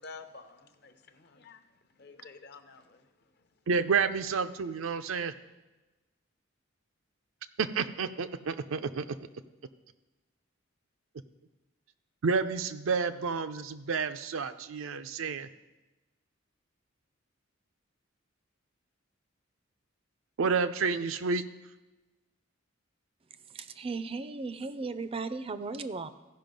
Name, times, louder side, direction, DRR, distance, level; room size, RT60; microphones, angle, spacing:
voice 1, 0.0-1.6 2.0-3.1, left 4 dB, 55° left, 0.8 m, -50 dB
voice 2, 3.7-5.3 7.6-9.2 12.2-15.5 20.4-21.4, right 5 dB, 85° right, 0.5 m, -30 dB
voice 3, 23.5-26.1, right 4 dB, 30° right, 0.4 m, -36 dB
14.5 x 5.3 x 5.2 m
head